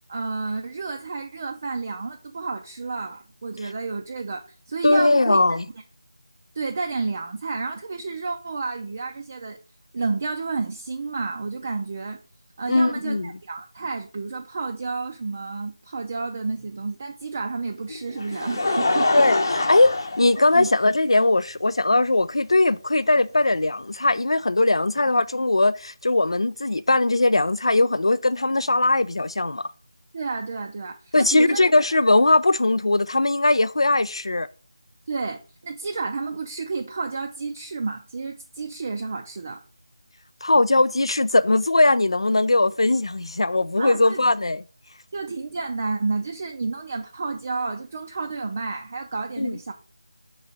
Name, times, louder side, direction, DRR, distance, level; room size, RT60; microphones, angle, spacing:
voice 1, 0.1-5.6 6.5-9.6 9.9-12.2 12.6-19.7 20.5-20.7 30.1-31.7 35.1-39.6 43.8-44.2 45.1-49.7, right 4 dB, 25° right, 0.4 m, -30 dB
voice 2, 4.8-5.6 12.7-13.3 19.1-19.9 20.2-29.7 31.1-34.5 40.4-44.6 49.4-49.6, left 2 dB, 85° left, 0.3 m, -20 dB
Laughter, 17.9-21.1 21.9-22.0 23.5-23.6, left 2 dB, 45° left, 0.8 m, -25 dB
5.4 x 3.9 x 4.8 m
figure-of-eight pair, 170°, 3 cm